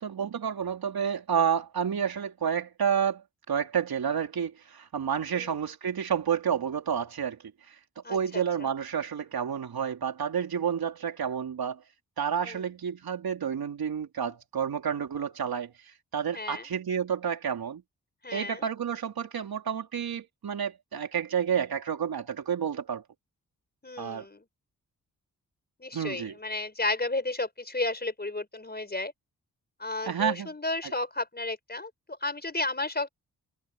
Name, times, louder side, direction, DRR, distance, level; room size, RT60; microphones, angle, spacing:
voice 1, 0.0-7.4 7.7-7.8 8.1-11.8 12.2-17.8 18.3-23.0 24.0-24.3 25.9-26.3 30.0-30.5 30.8-30.9, right 7 dB, 75° right, 3.9 m, -30 dB
voice 2, 8.0-8.7 12.4-12.6 16.3-16.7 18.2-18.7 23.8-24.4 25.8-29.1 29.8-33.1, left 2 dB, 25° left, 4.9 m, -33 dB
cardioid pair, 50°, 37 cm